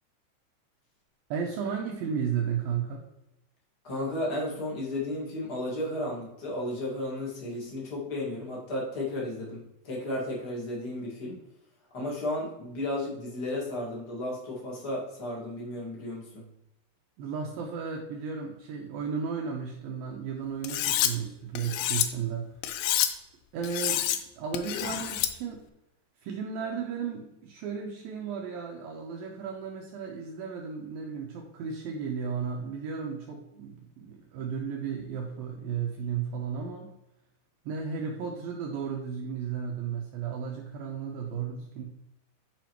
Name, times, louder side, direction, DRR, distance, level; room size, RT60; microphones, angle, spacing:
voice 1, 1.3-3.0 17.2-22.6 23.5-25.6 26.2-36.9 37.7-41.8, right 6 dB, 90° right, 0 dB, 2.0 m, -34 dB
voice 2, 3.8-11.4 11.9-16.5, left 1 dB, 60° left, -4 dB, 1.0 m, -33 dB
Cutlery silverware, 20.6-21.1 21.6-22.1 22.6-23.1 23.6-24.2 24.5-25.3, left 12 dB, 80° left, 2.6 m, -28 dB
11.0 x 5.0 x 3.0 m, 0.89 s
omnidirectional pair, 5.1 m